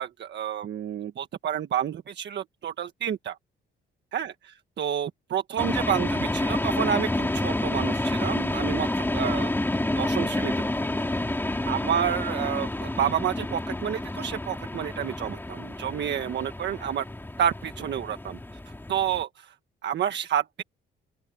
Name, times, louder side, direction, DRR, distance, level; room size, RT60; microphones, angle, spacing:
voice 1, 0.0-3.4 4.1-4.3 4.8-9.5 10.0-10.5 10.8-11.2 11.7-17.0 17.4-18.4 18.9-19.5 19.8-20.6, right 9 dB, 60° right, 1.5 m, -29 dB
sound 1, 5.6-19.2, left 1 dB, 10° left, 3.2 m, -29 dB
open air
cardioid pair, 90°, 20 cm